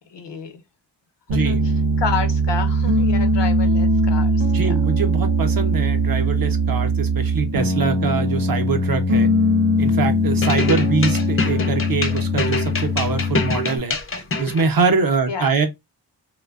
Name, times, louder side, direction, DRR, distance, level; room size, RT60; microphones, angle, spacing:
voice 1, 0.1-0.6 1.3-4.8 10.7-10.9 15.3-15.5, left 6 dB, 70° left, 0.6 m, -30 dB
voice 2, 1.3-1.6 4.5-9.3 9.8-15.7, right 4 dB, 50° right, 0.6 m, -23 dB
Piano, 1.3-13.8, equal, 85° right, 0.8 m, -20 dB
sound 1, 10.4-14.7, left 3 dB, 35° left, 0.4 m, -26 dB
2.6 x 2.2 x 2.2 m
wide cardioid pair, 105°, 44 cm